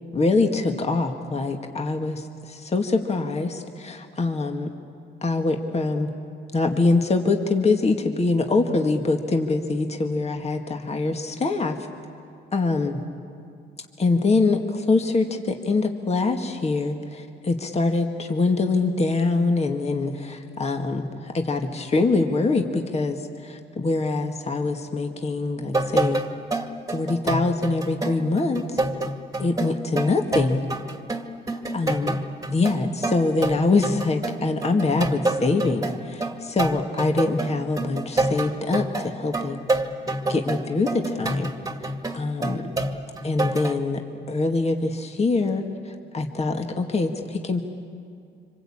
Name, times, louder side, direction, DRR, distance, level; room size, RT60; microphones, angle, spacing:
voice 1, 0.1-2.2 2.5-4.7 5.2-6.1 6.5-11.8 12.5-13.0 14.0-23.2 23.4-26.2 26.9-28.8 29.4-30.6 31.7-32.1 32.5-39.6 40.3-41.5 42.1-42.6 43.2-44.0 44.3-45.6 46.1-47.6, left 3 dB, 30° left, 4 dB, 2.1 m, -24 dB
sound 1, 25.6-43.7, right 2 dB, 15° right, 2.0 m, -28 dB
26.0 x 26.0 x 8.8 m, 2.4 s
cardioid pair, 90°, 20 cm